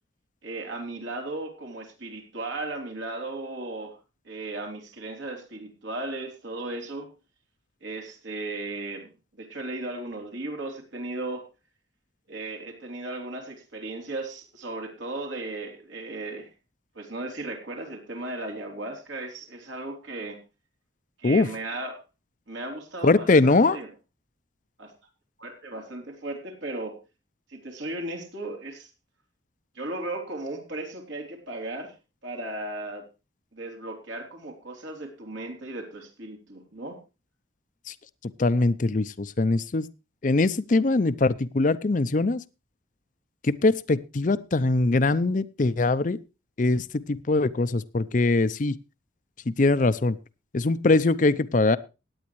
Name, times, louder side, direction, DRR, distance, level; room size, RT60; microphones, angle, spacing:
voice 1, 0.4-4.0 4.2-7.1 7.8-11.4 12.3-16.5 16.9-20.4 21.2-22.0 22.5-23.9 24.8-24.9 25.4-27.0 27.5-28.9 29.7-31.9 32.2-33.1 33.5-37.0, right 2 dB, 75° right, 2 dB, 3.2 m, -36 dB
voice 2, 23.0-23.8 38.4-39.9 40.2-42.4 43.4-46.2 46.6-48.7 49.5-50.2 50.5-51.8, left 3 dB, 40° left, 15 dB, 0.5 m, -22 dB
17.0 x 9.8 x 3.1 m, 0.29 s
head